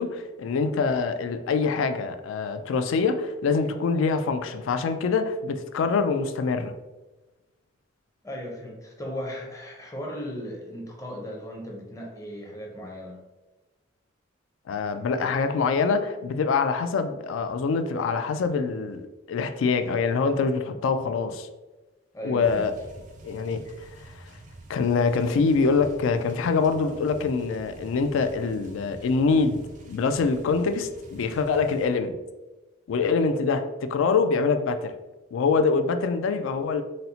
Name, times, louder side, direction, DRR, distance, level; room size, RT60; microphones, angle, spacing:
voice 1, 0.0-6.7 14.7-21.5 22.2-22.7 23.2-24.2 24.7-29.6 29.9-32.2 32.9-34.9 35.3-36.8, left 4 dB, 75° left, 9 dB, 0.3 m, -25 dB
voice 2, 8.2-13.2 22.1-22.7, equal, 15° left, -1 dB, 0.5 m, -37 dB
sound 1, 22.4-31.9, right 2 dB, 40° right, 0.4 m, -46 dB
4.1 x 2.0 x 2.7 m, 1.1 s
head